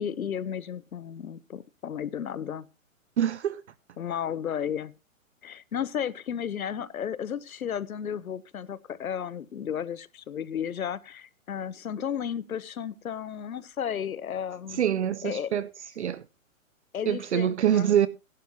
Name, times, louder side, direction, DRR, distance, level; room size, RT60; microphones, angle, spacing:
voice 1, 0.0-2.7 4.0-4.9 5.4-14.8 15.2-15.5 16.9-17.9, left 8 dB, 90° left, 1.0 m, -33 dB
voice 2, 3.2-3.6 14.7-15.7 16.0-16.2 17.1-18.1, right 9 dB, 55° right, 0.6 m, -25 dB
15.5 x 11.5 x 2.8 m
hypercardioid pair, 160°, 41 cm